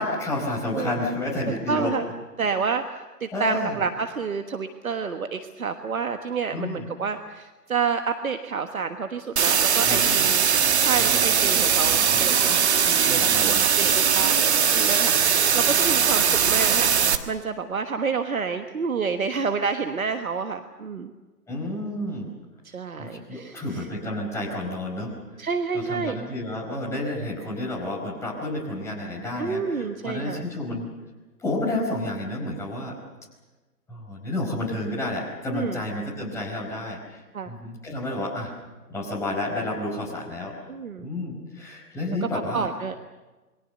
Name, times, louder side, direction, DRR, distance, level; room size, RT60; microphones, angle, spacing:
voice 1, 0.0-2.0 3.3-3.8 6.5-6.8 9.8-10.1 11.0-11.2 12.1-12.2 13.0-13.7 21.5-22.3 23.0-25.1 25.7-30.9 31.4-33.0 33.9-38.5 38.9-40.5 41.0-42.7, left 1 dB, 5° left, -3 dB, 4.7 m, -30 dB
voice 2, 1.7-2.1 2.4-10.5 10.8-21.1 22.6-23.9 25.4-26.2 29.4-30.5 35.5-35.8 37.3-37.5 40.7-41.1 42.1-42.9, right 5 dB, 60° right, 7 dB, 1.5 m, -29 dB
sound 1, 9.4-17.2, right 7 dB, 45° right, 1.5 m, -20 dB
28.0 x 22.5 x 6.6 m, 1.2 s
figure-of-eight pair, 140°, 46 cm